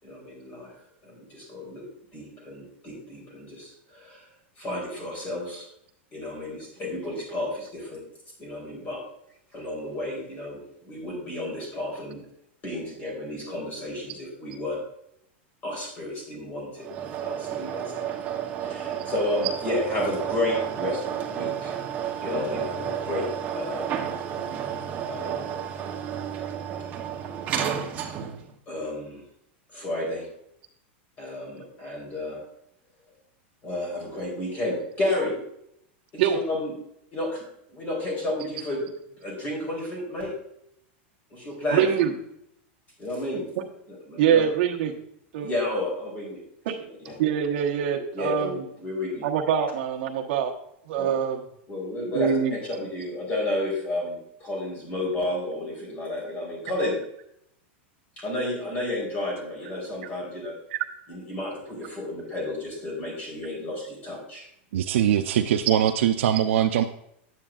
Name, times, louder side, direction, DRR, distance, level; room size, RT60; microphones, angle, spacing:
voice 1, 0.0-0.7 1.0-1.8 2.1-4.2 4.6-5.7 6.1-8.0 8.4-9.0 9.5-10.6 10.9-12.2 12.6-14.8 15.6-16.9 17.2-18.1 18.6-21.8 22.2-23.3 23.5-23.9 25.1-25.5 28.7-29.2 29.7-30.3 31.2-32.4 33.6-35.4 36.1-36.7 37.1-37.4 37.7-38.8 39.2-40.3 41.3-42.2 43.0-43.5 43.9-44.4 45.4-46.4 47.1-47.2 48.1-49.3 51.0-51.1 51.7-57.0 58.2-60.6 61.1-64.5, left 1 dB, 25° left, -1 dB, 3.5 m, -31 dB
sound 1, 16.8-28.5, right 9 dB, 25° right, 0.9 m, -31 dB
voice 2, 41.7-42.1 44.2-44.9 45.3-45.5 46.6-46.7 47.2-48.6 49.2-50.5 50.9-51.4 52.1-52.5 60.7-60.8, right 8 dB, 55° right, 2 dB, 1.2 m, -24 dB
voice 3, 64.7-66.8, right 10 dB, 85° right, 5 dB, 0.5 m, -22 dB
10.0 x 8.9 x 2.4 m, 0.74 s
supercardioid pair, 160°, 7 cm